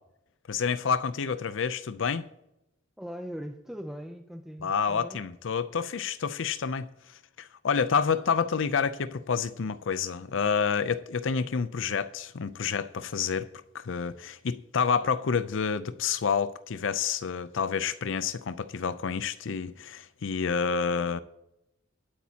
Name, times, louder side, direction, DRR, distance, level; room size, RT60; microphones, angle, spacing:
voice 1, 0.5-2.3 4.6-13.5 13.7-21.2, left 6 dB, 70° left, 0.5 m, -29 dB
voice 2, 3.0-5.2 11.4-11.7, equal, ahead, 0.5 m, -40 dB
20.5 x 8.5 x 2.8 m
head